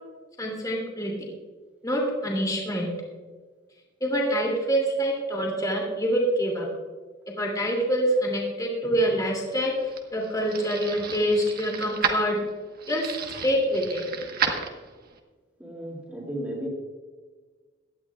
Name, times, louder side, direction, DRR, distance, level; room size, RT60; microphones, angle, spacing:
voice 1, 0.4-1.1 1.8-2.9 4.0-6.7 7.4-9.7 10.1-12.4 12.9-13.1 13.4-14.0, equal, 20° left, -1 dB, 2.6 m, -25 dB
sound 1, 9.2-15.2, right 6 dB, 50° right, 1.3 m, -33 dB
voice 2, 15.6-16.7, right 1 dB, 5° right, -4 dB, 2.5 m, -34 dB
18.0 x 11.5 x 2.4 m, 1.4 s
head